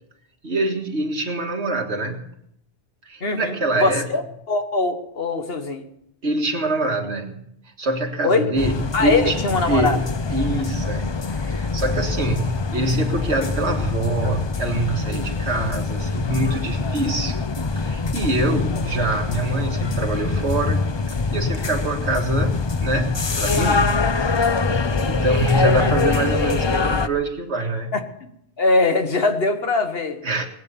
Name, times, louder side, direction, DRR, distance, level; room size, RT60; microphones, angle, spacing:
voice 1, 0.4-2.3 3.0-4.1 6.2-7.5 7.8-9.4 9.7-17.4 17.8-20.8 21.1-24.0 25.0-28.0 30.2-30.5, right 2 dB, 80° right, 3 dB, 2.1 m, -25 dB
voice 2, 3.2-4.2 4.5-5.8 8.2-8.5 8.9-10.0 25.8-25.9 27.9-28.3 28.6-30.2, left 3 dB, 60° left, 6 dB, 1.6 m, -21 dB
sound 1, 8.6-27.1, left 4 dB, 30° left, 0.5 m, -24 dB
20.0 x 8.4 x 6.9 m, 0.76 s
omnidirectional pair, 1.1 m